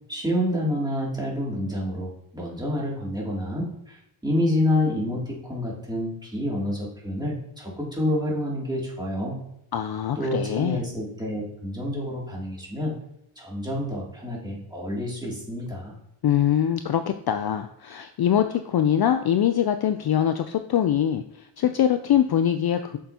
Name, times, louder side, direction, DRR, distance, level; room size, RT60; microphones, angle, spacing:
voice 1, 0.1-9.4 10.2-12.9 13.4-16.0, left 1 dB, 10° right, -5 dB, 2.6 m, -28 dB
voice 2, 9.7-10.8 16.2-23.0, left 10 dB, 50° left, 8 dB, 0.5 m, -23 dB
7.4 x 6.8 x 2.9 m, 0.81 s
wide cardioid pair, 110°, 49 cm